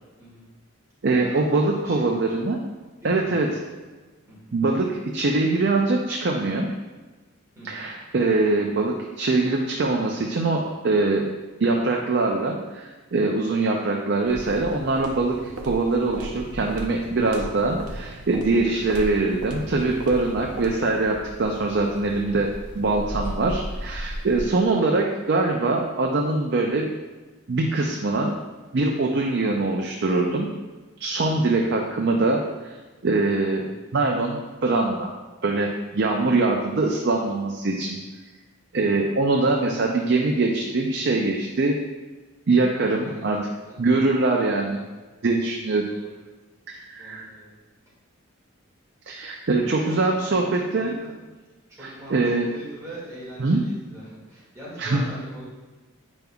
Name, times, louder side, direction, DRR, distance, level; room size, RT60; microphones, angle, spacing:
voice 1, 0.2-0.5 1.1-2.4 3.0-3.8 4.3-4.5 7.6-7.9 33.5-33.9 38.7-39.9 40.2-40.3 42.9-43.8 45.9-46.2 46.7-47.6 49.8-51.2 51.7-55.4, right 1 dB, 15° right, -9 dB, 1.9 m, -43 dB
voice 2, 1.0-2.6 3.0-3.5 4.5-6.7 7.6-11.3 11.6-15.4 15.7-26.9 27.5-28.4 28.7-30.5 31.0-32.8 33.0-33.6 33.9-35.1 35.4-38.0 38.7-41.8 42.5-43.4 43.8-44.8 45.2-45.8 46.7-47.3 49.1-50.9 51.8-52.5 53.4-53.6 54.8-55.0, right 3 dB, 50° right, 1 dB, 0.5 m, -23 dB
sound 1, 14.3-21.1, right 1 dB, 85° right, 0.7 m, -37 dB
sound 2, 18.9-24.5, equal, 55° left, 0.9 m, -37 dB
9.1 x 5.3 x 2.3 m, 1.3 s
head